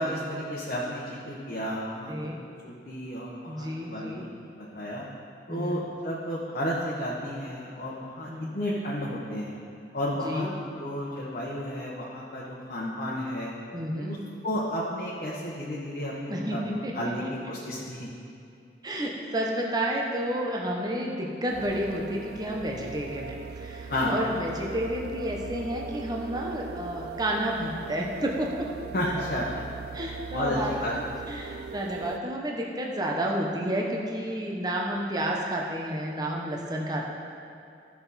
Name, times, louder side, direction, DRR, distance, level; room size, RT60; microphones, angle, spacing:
voice 1, 0.0-2.1 2.6-4.2 4.6-5.0 5.5-9.5 9.9-10.5 10.8-13.5 13.9-14.2 14.4-18.1 23.9-24.1 28.9-29.5 30.3-30.9, left 1 dB, 50° left, -7 dB, 1.2 m, -32 dB
voice 2, 2.1-2.4 3.4-4.3 5.5-5.8 8.3-8.5 10.2-10.5 13.7-14.2 16.3-16.9 17.2-17.3 18.8-28.7 29.9-37.1, right 1 dB, 25° right, -1 dB, 0.9 m, -31 dB
sound 1, 21.5-32.2, right 5 dB, 60° right, 0.3 m, -40 dB
14.0 x 5.9 x 4.2 m, 2.5 s
head